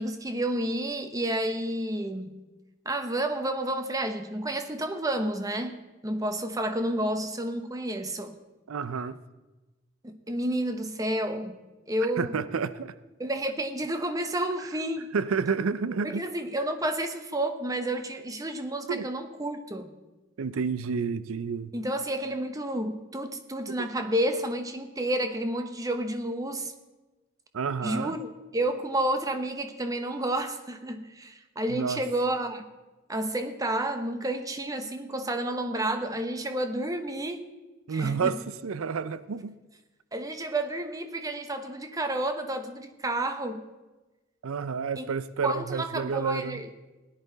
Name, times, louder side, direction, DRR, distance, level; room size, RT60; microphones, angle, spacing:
voice 1, 0.0-2.3 2.8-5.8 6.0-8.4 10.0-11.6 11.9-12.4 13.2-15.1 16.0-19.9 21.7-26.7 27.8-28.3 28.5-32.7 33.1-37.4 37.9-38.3 40.1-43.7 45.0-45.1 45.4-46.7, right 1 dB, 15° right, 8 dB, 0.8 m, -30 dB
voice 2, 8.7-9.2 12.2-12.9 14.6-14.7 15.1-16.3 18.9-19.1 20.4-21.7 23.7-23.9 27.5-28.2 31.7-32.0 37.9-39.6 44.4-46.6, right 5 dB, 80° right, 15 dB, 0.5 m, -30 dB
16.5 x 10.5 x 3.9 m, 1.1 s
head